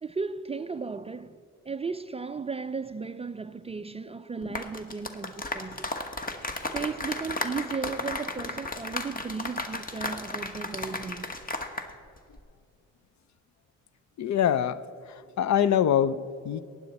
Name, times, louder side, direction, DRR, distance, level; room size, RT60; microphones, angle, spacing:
voice 1, 0.0-5.9 6.7-11.3, right 5 dB, 20° right, 0.3 m, -35 dB
sound 1, 4.4-11.9 12.2-12.4, left 2 dB, 25° left, 1.2 m, -34 dB
voice 2, 14.2-14.8 15.1-16.7, left 9 dB, 60° left, 0.5 m, -25 dB
15.5 x 9.8 x 4.1 m
cardioid pair, 75°, 32 cm